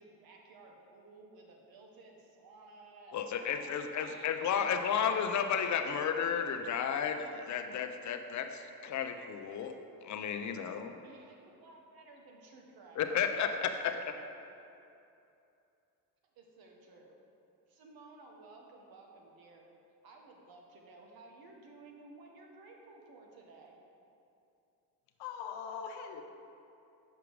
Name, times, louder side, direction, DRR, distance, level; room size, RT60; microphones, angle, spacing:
voice 1, 0.0-3.5 4.0-5.9 11.0-13.4 16.3-17.2 17.7-19.6 20.0-23.8, right 3 dB, 65° right, 1 dB, 1.4 m, -55 dB
voice 2, 3.1-10.9 13.0-14.2, left 7 dB, 45° left, 6 dB, 0.7 m, -33 dB
voice 3, 25.2-26.2, left 7 dB, 90° left, 4 dB, 0.7 m, -41 dB
6.7 x 6.1 x 4.7 m, 2.7 s
cardioid pair, 100°, 39 cm